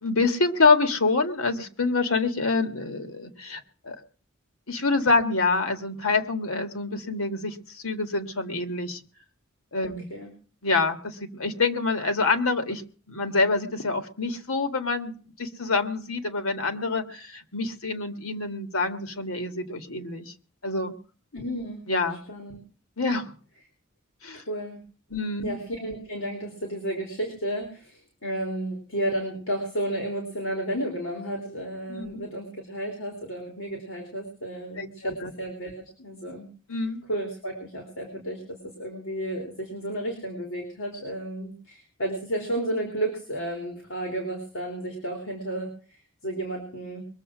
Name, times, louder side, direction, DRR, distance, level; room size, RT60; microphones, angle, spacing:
voice 1, 0.0-4.0 4.7-9.0 9.7-10.1 10.6-12.8 13.1-20.3 20.6-20.9 21.9-22.2 23.0-23.3 24.2-24.4 25.1-25.5 31.9-32.3 34.8-35.3 36.7-37.0, left 3 dB, 85° left, 8 dB, 1.8 m, -26 dB
voice 2, 9.8-10.3 21.3-21.8 22.3-22.6 24.3-24.8 25.4-36.5 37.1-47.0, right 1 dB, 70° left, 1 dB, 3.5 m, -32 dB
22.0 x 7.5 x 6.1 m, 0.41 s
head